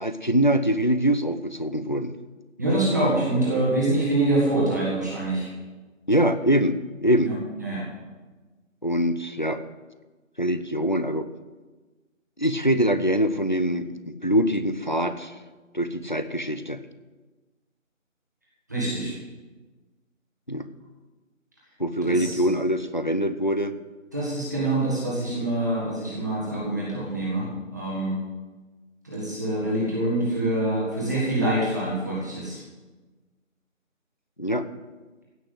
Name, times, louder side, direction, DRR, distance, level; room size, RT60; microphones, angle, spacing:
voice 1, 0.0-2.1 6.1-7.3 8.8-9.6 10.4-11.3 12.4-15.3 15.7-16.8 20.5-20.7 21.8-23.8 34.4-34.6, equal, 35° left, 10 dB, 0.6 m, -24 dB
voice 2, 2.6-5.5 7.2-7.8 18.7-19.1 22.0-22.4 24.1-28.2 29.0-32.6, right 1 dB, 15° right, -7 dB, 1.8 m, -25 dB
16.0 x 6.2 x 7.8 m, 1.3 s
figure-of-eight pair, 175°, 41 cm